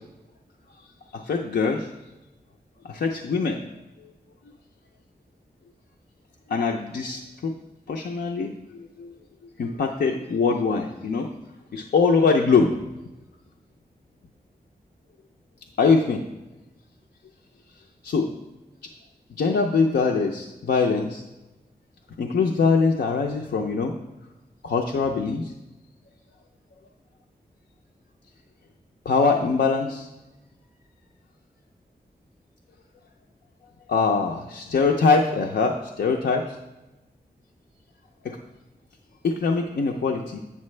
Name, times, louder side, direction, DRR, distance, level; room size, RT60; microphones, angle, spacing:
voice 1, 1.1-1.9 2.8-3.6 6.5-7.5 7.9-9.1 9.6-11.3 11.7-12.7 15.8-16.2 18.1-18.2 19.4-21.2 22.2-23.9 24.6-25.5 29.1-30.1 33.9-36.4 38.2-38.4 39.2-40.4, left 4 dB, 80° left, 1 dB, 0.5 m, -23 dB
8.4 x 6.7 x 3.2 m, 1.1 s
wide cardioid pair, 100°, 17 cm